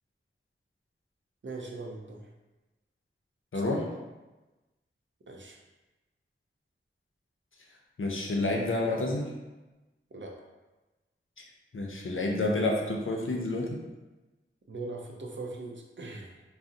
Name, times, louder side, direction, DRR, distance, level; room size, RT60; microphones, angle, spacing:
voice 1, 1.4-2.3 3.5-3.8 5.3-5.6 10.1-10.4 14.7-16.4, right 2 dB, 65° right, 0 dB, 0.5 m, -40 dB
voice 2, 8.0-9.3 11.4-11.5 11.7-13.8, left 2 dB, 75° left, -1 dB, 0.5 m, -29 dB
2.6 x 2.0 x 3.6 m, 1.1 s
wide cardioid pair, 45°, 21 cm